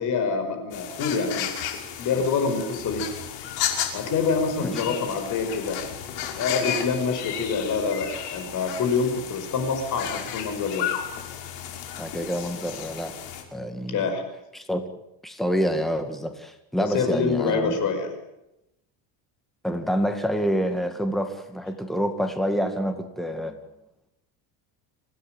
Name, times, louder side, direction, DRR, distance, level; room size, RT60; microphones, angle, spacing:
voice 1, 0.0-1.5 2.0-3.0 3.9-5.8 6.3-10.9 13.9-14.2 16.8-18.1, left 5 dB, 45° left, 7 dB, 5.4 m, -26 dB
sound 1, 0.7-13.4, left 9 dB, 70° left, 5.8 m, -33 dB
voice 2, 4.6-4.9 12.0-13.1 13.5-14.1 14.5-14.8 15.2-17.8 19.6-23.6, equal, ahead, 6 dB, 2.1 m, -27 dB
26.5 x 18.0 x 9.1 m, 0.87 s
cardioid pair, 165°, 43 cm